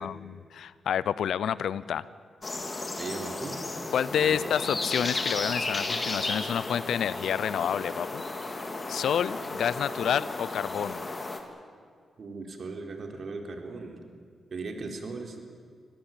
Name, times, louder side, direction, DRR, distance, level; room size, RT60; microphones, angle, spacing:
voice 1, 0.0-2.1 3.9-8.2 8.9-11.0, left 9 dB, 80° left, 18 dB, 0.7 m, -29 dB
sound 1, 2.4-11.4, left 2 dB, 35° left, 3.3 m, -34 dB
voice 2, 3.0-3.6 4.2-4.5 12.2-14.0 14.5-15.4, right 3 dB, 60° right, 4 dB, 3.9 m, -38 dB
26.0 x 17.0 x 9.1 m, 2.1 s
cardioid pair, 60°, 0 cm